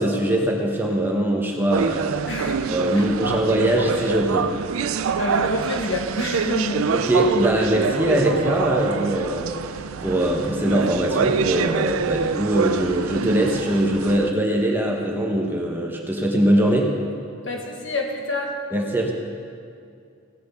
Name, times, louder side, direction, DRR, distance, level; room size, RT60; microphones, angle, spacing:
voice 1, 0.0-2.3 2.7-4.5 6.9-16.9 18.7-19.1, right 1 dB, 10° right, 0 dB, 1.1 m, -22 dB
sound 1, 1.7-14.3, right 6 dB, 85° right, 0.4 m, -26 dB
voice 2, 2.3-2.6 2.9-3.1 5.2-6.9 17.4-18.6, left 2 dB, 60° left, 1 dB, 1.6 m, -27 dB
17.0 x 6.0 x 6.9 m, 2.4 s
head